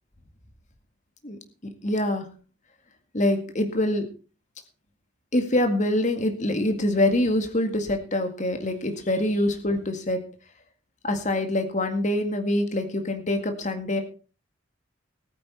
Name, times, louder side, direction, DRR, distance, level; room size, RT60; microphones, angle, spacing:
voice 1, 1.8-2.3 3.1-4.1 5.3-10.2 11.0-14.0, left 1 dB, 40° left, 6 dB, 2.0 m, -25 dB
19.5 x 9.0 x 4.4 m, 0.35 s
head